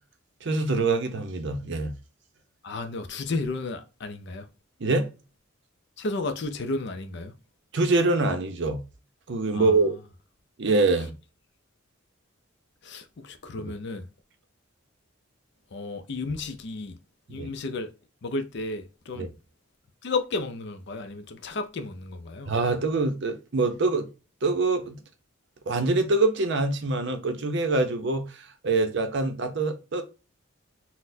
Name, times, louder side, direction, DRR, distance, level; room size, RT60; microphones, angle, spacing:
voice 1, 0.4-1.9 4.8-5.1 7.7-8.8 9.3-9.9 10.6-11.1 17.3-17.5 19.2-19.3 22.5-24.1 24.4-25.0 25.7-28.2 28.6-30.0, right 3 dB, 55° right, 0.6 m, -24 dB
voice 2, 2.6-4.5 6.0-7.3 9.5-9.9 12.8-14.1 15.7-17.0 17.3-17.9 18.2-19.3 20.0-22.5, left 3 dB, 55° left, 0.5 m, -33 dB
4.0 x 2.1 x 2.6 m
head